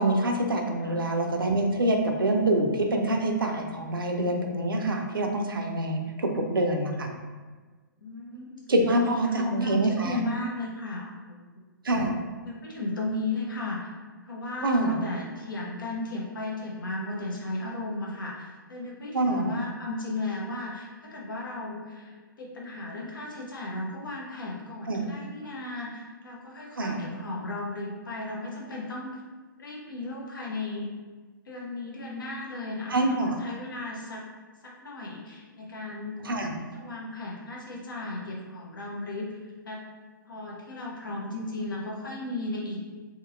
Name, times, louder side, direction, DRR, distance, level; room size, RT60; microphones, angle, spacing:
voice 1, 0.0-7.1 8.7-10.2 11.8-12.2 14.6-15.0 19.1-19.5 24.9-25.0 26.8-27.1 32.9-33.4 36.2-36.5, right 1 dB, 80° right, 3 dB, 0.5 m, -26 dB
voice 2, 8.0-8.6 8.9-11.4 12.4-13.9 14.2-29.2 29.6-30.9 31.5-34.2 34.6-36.2 36.7-39.3 39.7-39.8 40.3-42.8, left 2 dB, 70° left, -3 dB, 0.8 m, -35 dB
2.8 x 2.7 x 2.5 m, 1.4 s
figure-of-eight pair, 125°, 11 cm